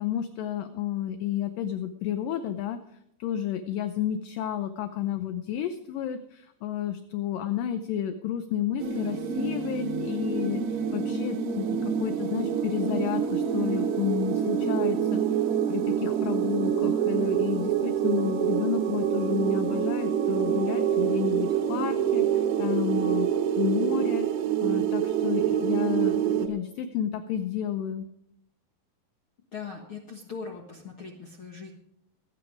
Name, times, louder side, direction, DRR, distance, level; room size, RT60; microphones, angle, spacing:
voice 1, 0.0-2.8 3.2-24.3 24.6-28.1, left 10 dB, 80° left, 10 dB, 2.0 m, -31 dB
sound 1, 8.8-26.5, right 9 dB, 80° right, 3.1 m, -26 dB
voice 2, 29.5-31.7, left 5 dB, 65° left, 1 dB, 1.3 m, -40 dB
20.0 x 9.2 x 4.9 m, 0.78 s
omnidirectional pair, 4.7 m